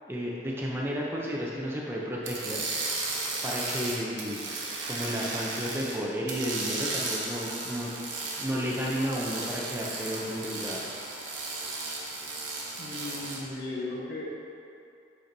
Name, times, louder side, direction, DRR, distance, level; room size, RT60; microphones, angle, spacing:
voice 1, 0.1-2.6 3.4-4.4 4.8-7.9 8.4-10.8, equal, 10° right, -3 dB, 0.5 m, -32 dB
sound 1, 2.2-6.0 6.3-13.4, right 3 dB, 80° right, 1.0 m, -35 dB
voice 2, 12.8-14.4, left 2 dB, 55° left, -4 dB, 1.0 m, -36 dB
10.0 x 4.4 x 2.7 m, 2.6 s
head